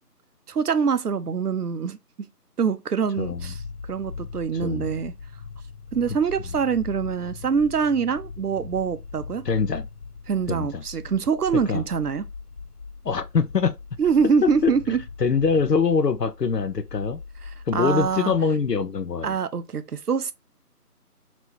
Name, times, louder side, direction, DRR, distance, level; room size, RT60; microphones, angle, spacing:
voice 1, 0.5-2.3 2.6-3.6 3.9-5.1 5.9-9.4 10.3-12.2 14.0-15.0 17.7-18.3 19.2-20.3, right 6 dB, 70° right, 0.6 m, -24 dB
voice 2, 3.2-3.5 4.6-4.9 9.5-9.9 10.5-10.8 11.7-11.8 13.0-13.8 14.4-14.7 15.2-17.2 17.7-19.4, left 5 dB, 85° left, 0.7 m, -23 dB
sound 1, 3.2-18.9, left 4 dB, 60° left, 1.3 m, -40 dB
3.3 x 2.9 x 2.7 m
figure-of-eight pair, 160°, 48 cm